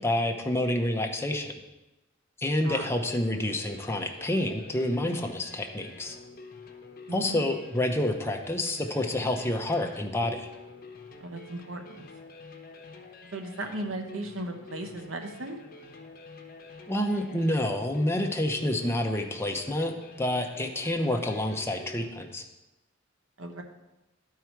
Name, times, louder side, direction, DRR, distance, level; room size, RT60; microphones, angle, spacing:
voice 1, 0.0-1.5 2.4-6.1 7.1-10.5 16.9-22.4, left 1 dB, 15° left, 2 dB, 0.8 m, -28 dB
sound 1, 2.7-22.1, left 3 dB, 50° left, 0.9 m, -48 dB
voice 2, 7.1-7.4 11.2-12.0 13.3-15.6 23.4-23.6, right 1 dB, 80° right, 4 dB, 1.0 m, -36 dB
11.5 x 4.7 x 4.6 m, 1.0 s
head